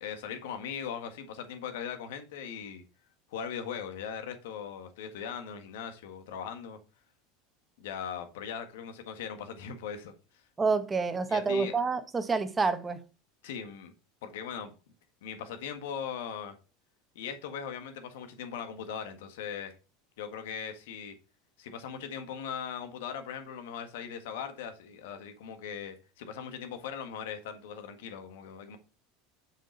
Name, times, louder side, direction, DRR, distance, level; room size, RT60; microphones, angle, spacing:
voice 1, 0.0-2.8 3.3-6.8 7.8-10.1 11.3-11.7 13.4-13.9 14.2-14.7 15.2-16.5 17.1-19.7 20.2-21.2 21.6-28.8, left 7 dB, 75° left, 1.6 m, -39 dB
voice 2, 10.6-13.0, right 4 dB, 20° right, 1.3 m, -28 dB
6.9 x 6.0 x 4.1 m
hypercardioid pair, 95°, 0 cm